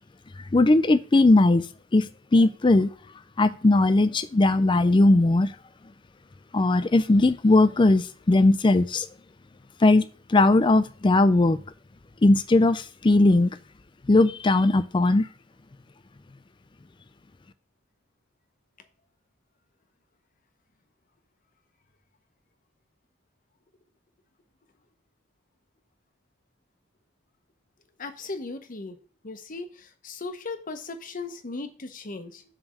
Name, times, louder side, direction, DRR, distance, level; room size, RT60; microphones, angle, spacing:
voice 1, 0.5-1.7 1.9-2.9 3.4-5.5 6.5-9.1 9.8-11.6 12.2-13.5 14.1-15.3, left 2 dB, 25° left, 14 dB, 0.4 m, -19 dB
voice 2, 28.0-29.0 29.2-32.4, left 3 dB, 40° left, 9 dB, 0.8 m, -37 dB
7.3 x 3.4 x 6.2 m, 0.40 s
head